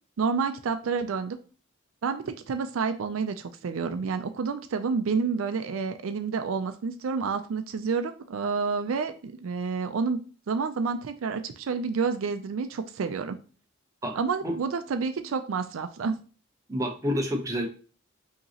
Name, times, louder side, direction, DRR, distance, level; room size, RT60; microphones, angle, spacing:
voice 1, 0.2-1.4 2.0-10.2 10.5-13.4 14.2-16.1, right 5 dB, 75° right, 8 dB, 0.4 m, -29 dB
voice 2, 14.0-14.5 16.7-17.7, equal, 15° right, 1 dB, 0.8 m, -29 dB
5.3 x 2.9 x 2.8 m, 0.37 s
head